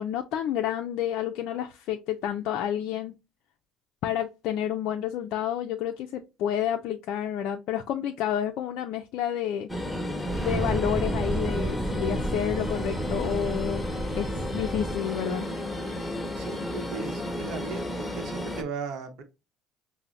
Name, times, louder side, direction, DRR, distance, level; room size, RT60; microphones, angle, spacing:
voice 1, 0.0-3.1 4.0-9.7 10.4-13.8 14.2-15.4, left 10 dB, 70° left, 0.3 m, -29 dB
sound 1, 9.7-18.6, left 1 dB, 10° left, 1.0 m, -33 dB
sound 2, 10.2-15.0, right 2 dB, 25° right, 0.3 m, -32 dB
voice 2, 16.3-19.2, right 5 dB, 65° right, 0.8 m, -37 dB
5.5 x 2.0 x 2.4 m
hypercardioid pair, 60°, 0 cm